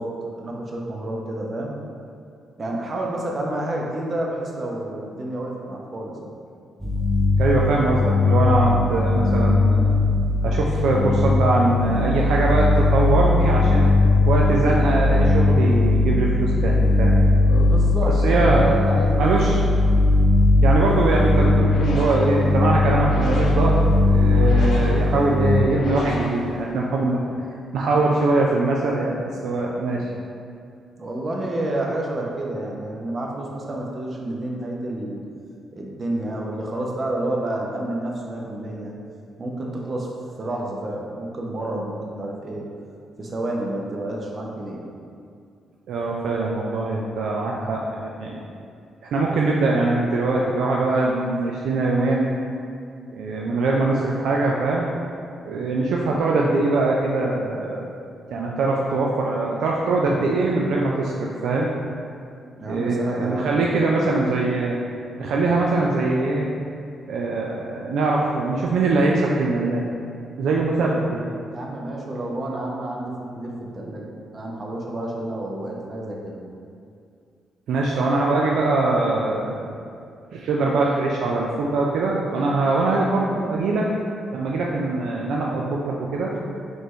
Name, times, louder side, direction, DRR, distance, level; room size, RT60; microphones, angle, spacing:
voice 1, 0.0-1.7 2.6-6.3 17.5-19.6 31.0-35.2 35.7-38.9 39.4-40.1 40.4-42.6 43.2-44.8 62.6-63.9 71.5-74.0 74.3-76.4 86.3-86.4, right 1 dB, 45° right, -2 dB, 0.8 m, -29 dB
sound 1, 6.8-25.6, left 2 dB, 5° right, 0.6 m, -19 dB
voice 2, 7.4-10.0 10.4-13.9 14.3-17.1 18.2-18.6 19.2-19.6 20.6-27.2 27.7-30.1 45.9-48.4 49.1-52.3 53.1-54.9 55.5-57.9 58.3-61.7 62.7-64.8 65.2-66.5 67.1-69.8 70.4-71.2 77.7-79.7 80.3-83.9 84.3-86.3, right 3 dB, 75° right, -2 dB, 0.3 m, -22 dB
sound 2, 21.4-27.0, left 2 dB, 70° left, 0.5 m, -35 dB
4.2 x 3.1 x 3.2 m, 2.4 s
supercardioid pair, 50°, 0 cm